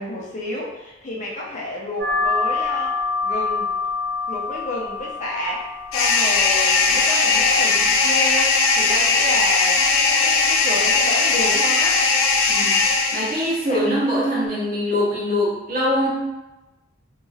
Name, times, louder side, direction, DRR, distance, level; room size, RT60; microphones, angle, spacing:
voice 1, 0.0-3.0 3.2-3.8 4.3-12.1 13.7-13.9, left 1 dB, 40° left, -3 dB, 0.6 m, -30 dB
sound 1, 2.0-11.0, left 4 dB, 25° right, 1.2 m, -29 dB
sound 2, 5.9-13.7, left 4 dB, 85° left, 0.4 m, -19 dB
voice 2, 12.5-12.8 13.1-16.1, equal, 45° right, -6 dB, 0.9 m, -22 dB
2.9 x 2.6 x 2.4 m, 1.0 s
head